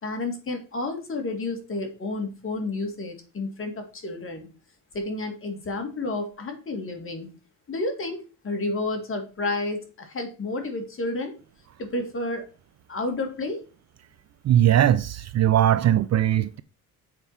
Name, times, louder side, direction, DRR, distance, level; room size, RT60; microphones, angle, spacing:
voice 1, 0.0-4.5 4.9-7.3 7.7-11.3 11.8-12.5 12.9-13.6, left 2 dB, 35° left, 2.2 m, -31 dB
voice 2, 14.4-16.6, right 11 dB, 45° right, 0.4 m, -20 dB
7.5 x 4.6 x 5.7 m
cardioid pair, 140°, 36 cm